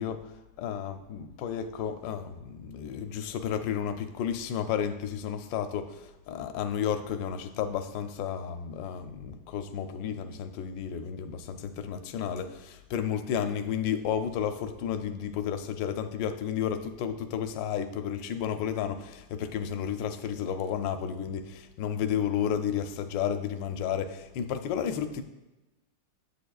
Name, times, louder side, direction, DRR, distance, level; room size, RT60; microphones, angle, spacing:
voice 1, 0.0-25.2, left 8 dB, 80° left, 8 dB, 1.2 m, -32 dB
8.4 x 7.6 x 2.3 m, 1.0 s
omnidirectional pair, 2.0 m